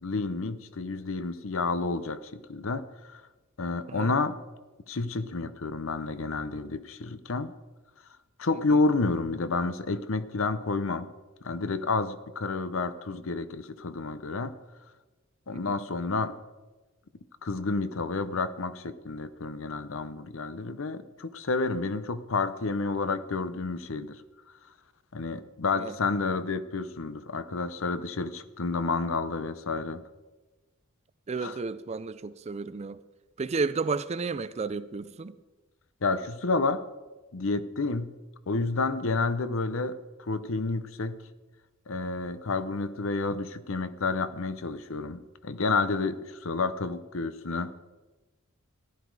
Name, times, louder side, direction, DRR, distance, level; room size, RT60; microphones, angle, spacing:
voice 1, 0.0-3.2 3.6-4.4 4.9-7.5 8.4-11.1 11.4-14.5 15.5-16.3 17.4-24.2 25.1-30.0 31.4-31.5 36.0-36.8 37.3-38.1 38.5-41.2 41.9-47.8, left 3 dB, 65° left, 0.7 m, -30 dB
voice 2, 31.3-33.0 33.4-35.3, right 4 dB, 30° right, 0.4 m, -32 dB
14.5 x 11.5 x 4.7 m
head